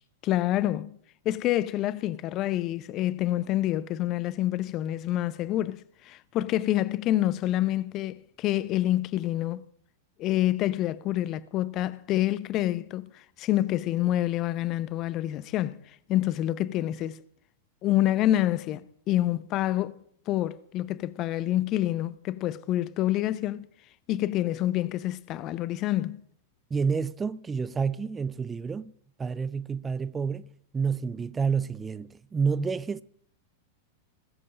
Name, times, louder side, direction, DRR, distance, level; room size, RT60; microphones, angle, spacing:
voice 1, 0.2-1.0 1.2-9.6 10.2-15.8 16.1-17.2 17.8-20.0 20.3-23.7 24.1-26.2, left 14 dB, 40° left, 0.7 m, -27 dB
voice 2, 26.7-28.9 29.2-33.0, right 5 dB, 15° right, 0.5 m, -29 dB
20.0 x 7.7 x 7.6 m
figure-of-eight pair, 95°, 0 cm